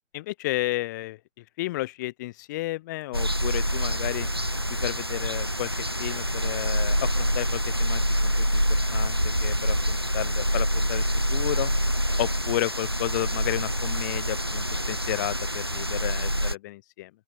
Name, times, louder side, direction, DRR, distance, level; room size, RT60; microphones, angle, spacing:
voice 1, 0.1-1.2 1.6-4.3 4.8-5.7 6.0-8.6 8.9-11.0 11.3-11.7 12.2-17.1, left 18 dB, 15° left, 7.6 m, -32 dB
sound 1, 3.1-16.6, equal, 20° right, 0.7 m, -26 dB
open air
hypercardioid pair, 175°, 39 cm